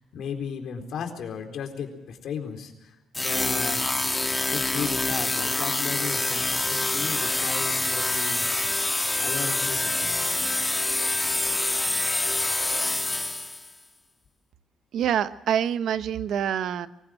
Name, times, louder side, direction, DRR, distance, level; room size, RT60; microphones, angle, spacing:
voice 1, 0.0-3.8 4.5-8.4 9.2-10.2, left 7 dB, 70° left, 4 dB, 4.2 m, -35 dB
sound 1, 3.1-13.7, left 2 dB, 15° left, 1.6 m, -26 dB
voice 2, 14.9-16.9, right 9 dB, 75° right, 12 dB, 1.0 m, -26 dB
24.0 x 16.0 x 7.7 m, 0.98 s
cardioid pair, 90°, 0 cm